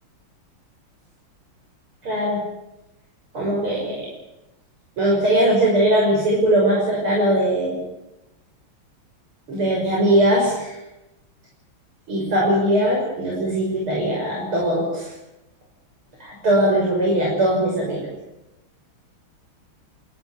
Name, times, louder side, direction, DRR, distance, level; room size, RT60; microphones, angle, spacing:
voice 1, 2.0-2.4 3.3-4.1 5.0-7.8 9.5-10.8 12.1-15.1 16.2-18.1, right 1 dB, 85° right, -3 dB, 7.1 m, -20 dB
29.5 x 14.0 x 8.6 m, 0.91 s
omnidirectional pair, 2.3 m